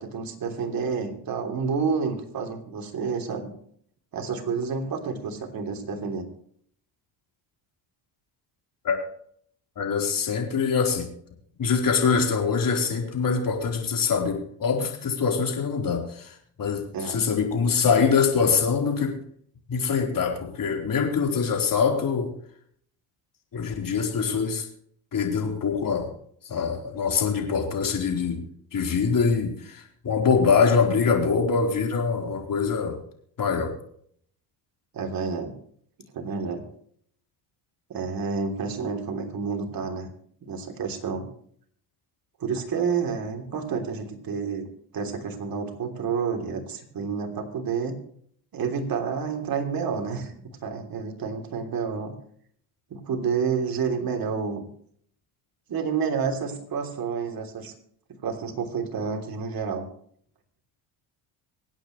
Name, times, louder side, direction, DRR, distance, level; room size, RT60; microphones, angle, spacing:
voice 1, 0.0-3.5 4.1-6.2 16.9-17.2 34.9-35.5 36.1-36.6 37.9-40.1 40.4-41.3 42.4-44.6 44.9-48.0 48.5-52.1 52.9-54.6 55.7-57.7 58.2-59.9, right 5 dB, 50° right, 3 dB, 3.2 m, -29 dB
voice 2, 9.8-11.1 11.6-19.2 19.7-22.3 23.5-24.7 25.1-26.1 26.4-28.4 28.7-33.0 33.4-33.7, left 5 dB, 45° left, 1 dB, 4.3 m, -24 dB
25.5 x 9.0 x 3.2 m, 0.63 s
cardioid pair, 95°, 45 cm